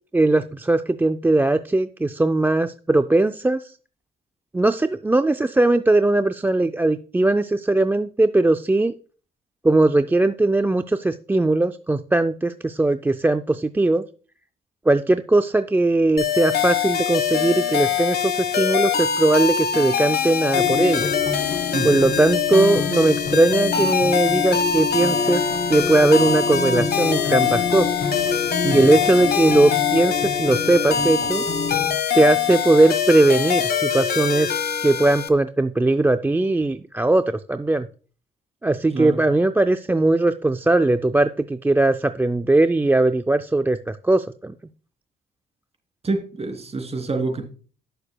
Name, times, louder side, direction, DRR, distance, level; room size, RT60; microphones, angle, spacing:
voice 1, 0.1-3.7 4.5-8.9 9.6-14.0 14.9-21.1 21.8-25.4 25.7-27.9 28.7-31.4 32.1-34.5 34.8-37.9 38.6-44.5, right 2 dB, 10° right, 9 dB, 0.3 m, -19 dB
sound 1, 16.2-35.3, left 7 dB, 55° left, 1.2 m, -23 dB
sound 2, 20.5-31.9, left 5 dB, 35° left, 4.3 m, -28 dB
voice 2, 46.0-47.4, right 3 dB, 30° right, 3 dB, 3.0 m, -26 dB
16.5 x 6.7 x 2.2 m, 0.41 s
cardioid pair, 90°, 20 cm